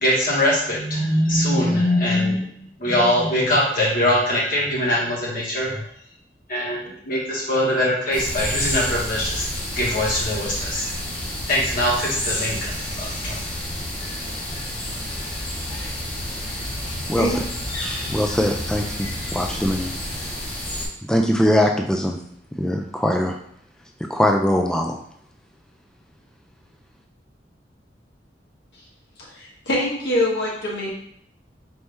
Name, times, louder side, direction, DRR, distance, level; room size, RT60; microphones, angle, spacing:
voice 1, 0.0-2.5 2.8-5.8 6.5-9.4 9.7-10.9 11.5-12.7 13.0-13.4, left 1 dB, 50° left, -6 dB, 1.6 m, -22 dB
sound 1, 8.1-20.9, left 1 dB, 30° left, 1.1 m, -29 dB
voice 2, 18.1-19.9 21.1-22.2 22.6-23.4 24.1-25.0, equal, 5° left, 2 dB, 0.3 m, -21 dB
voice 3, 29.2-30.9, left 1 dB, 80° left, -4 dB, 1.4 m, -24 dB
4.4 x 2.7 x 3.5 m, 0.69 s
head